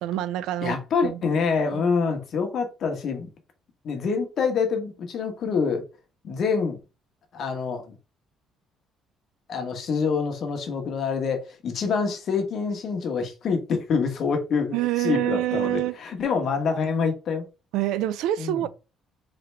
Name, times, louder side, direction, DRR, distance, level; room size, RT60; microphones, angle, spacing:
voice 1, 0.0-0.8 1.0-1.2 1.7-1.9 14.7-16.0 17.7-18.7, right 14 dB, 85° right, 0.4 m, -26 dB
voice 2, 0.6-3.3 3.8-5.8 6.2-6.8 7.3-8.0 9.5-17.4 18.4-18.6, left 5 dB, 55° left, 1.1 m, -26 dB
3.8 x 3.3 x 3.3 m
cardioid pair, 110°, 0 cm